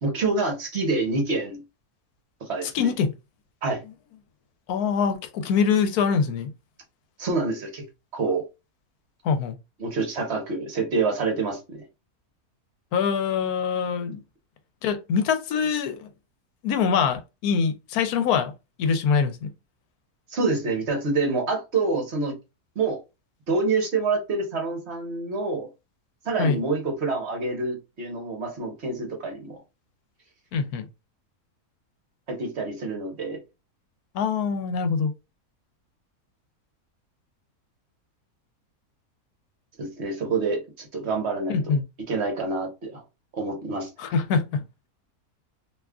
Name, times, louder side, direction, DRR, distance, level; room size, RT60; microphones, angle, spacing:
voice 1, 0.0-1.6 2.4-2.9 3.6-3.8 7.2-7.8 8.1-8.4 9.8-11.8 20.3-22.3 22.8-23.0 23.5-25.7 26.2-29.6 32.3-33.4 39.8-41.6 42.1-43.0 43.3-43.9, right 3 dB, 50° right, 1.1 m, -27 dB
voice 2, 2.7-3.1 4.7-6.5 9.2-9.6 12.9-14.2 14.8-16.1 16.6-18.5 18.8-19.5 26.4-26.6 30.5-30.8 34.1-35.1 41.5-41.8 44.0-44.6, left 6 dB, 90° left, 1.1 m, -24 dB
2.8 x 2.3 x 3.5 m
omnidirectional pair, 1.6 m